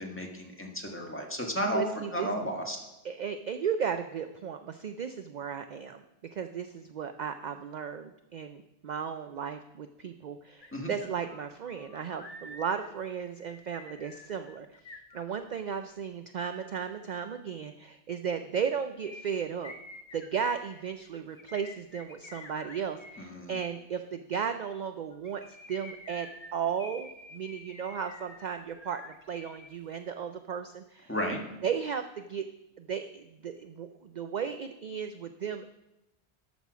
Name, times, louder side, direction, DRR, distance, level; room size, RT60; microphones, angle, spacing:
voice 1, 0.0-1.8 2.1-2.8 10.7-10.9 23.2-23.6 31.1-31.4, equal, 10° left, 0 dB, 1.6 m, -33 dB
voice 2, 1.7-2.3 3.0-6.0 6.3-14.8 15.1-19.7 20.1-25.4 25.7-31.1 31.6-32.5 32.8-35.7, right 7 dB, 55° right, 8 dB, 0.5 m, -35 dB
sound 1, 10.6-10.7 11.0-15.8 19.0-23.3 25.1-29.7 30.0-30.1, left 2 dB, 35° left, 1.1 m, -49 dB
12.5 x 6.2 x 6.1 m, 0.93 s
omnidirectional pair, 1.1 m